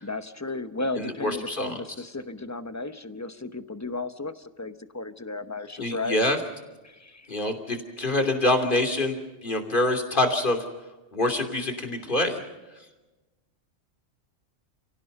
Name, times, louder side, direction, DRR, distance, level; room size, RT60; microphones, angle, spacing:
voice 1, 0.0-6.2 6.8-7.4, left 2 dB, 15° left, 10 dB, 0.9 m, -34 dB
voice 2, 0.9-1.8 5.8-6.4 7.3-9.2 9.4-10.6 11.1-12.4, left 1 dB, 45° left, 4 dB, 3.1 m, -25 dB
30.0 x 17.0 x 5.4 m, 1.1 s
omnidirectional pair, 1.2 m